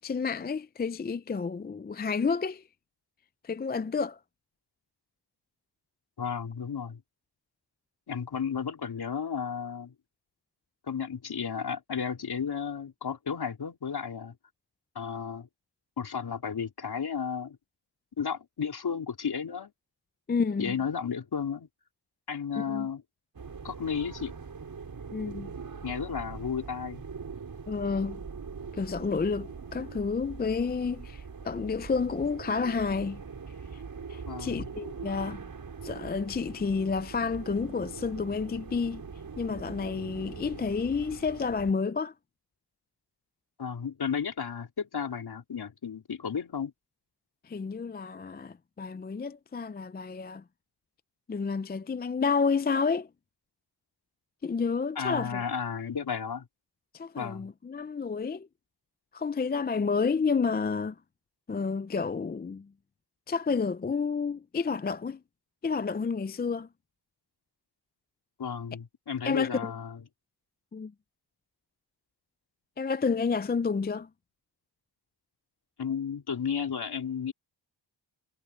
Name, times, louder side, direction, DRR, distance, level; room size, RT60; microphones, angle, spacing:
voice 1, 0.0-2.6 3.4-4.2 20.3-20.7 22.6-22.9 25.1-25.5 27.7-28.2 28.7-33.2 33.7-33.8 34.1-35.4 35.8-39.0 39.4-42.1 47.4-50.4 51.3-53.1 54.4-55.4 56.9-58.5 59.1-61.0 61.5-62.7 63.3-65.2 65.6-66.7 69.2-69.7 70.7-70.9 72.8-74.1, left 5 dB, 20° left, 0.5 m, -30 dB
voice 2, 6.2-7.0 8.1-9.9 10.9-14.4 14.9-15.5 16.0-17.6 18.2-19.7 20.6-21.7 22.3-23.0 23.6-24.4 25.8-27.0 34.3-34.7 43.6-46.7 55.0-56.5 57.2-57.5 68.4-70.0 75.8-77.3, left 7 dB, 60° left, 4.1 m, -33 dB
sound 1, 23.3-41.7, right 5 dB, 50° right, 5.9 m, -42 dB
cardioid pair, 85°, 44 cm